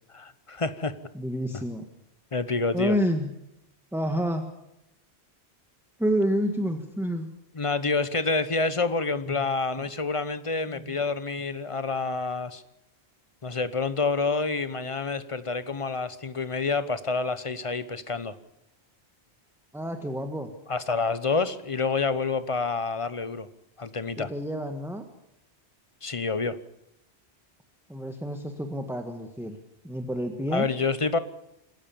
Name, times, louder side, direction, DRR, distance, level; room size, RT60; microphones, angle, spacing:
voice 1, 0.1-0.9 2.3-3.0 7.5-12.6 13.4-18.3 20.7-23.5 23.8-24.3 26.0-26.6 30.5-31.2, left 4 dB, 30° left, 14 dB, 1.0 m, -28 dB
voice 2, 1.1-1.8 2.7-3.3 3.9-4.5 6.0-7.3 9.3-9.4 10.7-11.0 19.7-20.5 24.2-25.0 27.9-29.6 29.8-30.7, equal, ahead, 5 dB, 1.5 m, -29 dB
26.5 x 15.0 x 7.1 m, 0.85 s
omnidirectional pair, 1.1 m